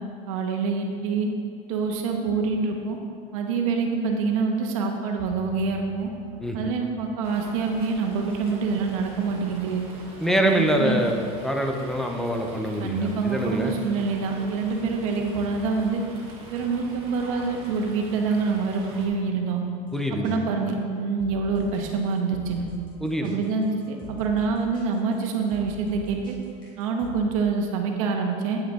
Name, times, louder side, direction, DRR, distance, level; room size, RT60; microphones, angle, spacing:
voice 1, 0.3-1.3 1.7-3.0 3.3-6.1 6.5-9.8 10.3-11.0 12.8-16.0 16.5-19.6 20.1-22.6 23.2-26.4 26.8-28.6, right 4 dB, 80° right, 2 dB, 1.2 m, -26 dB
sound 1, 5.2-7.3, equal, 45° left, 1.5 m, -47 dB
voice 2, 6.4-6.7 10.2-13.7 19.9-20.4 23.0-23.4, equal, ahead, 3 dB, 0.5 m, -25 dB
Fowl, 7.2-19.1, right 2 dB, 35° right, 1.4 m, -43 dB
sound 2, 19.9-20.0 20.2-20.3 20.8-27.1, left 2 dB, 25° left, 1.9 m, -44 dB
8.9 x 6.3 x 4.1 m, 2.2 s
supercardioid pair, 160°, 17 cm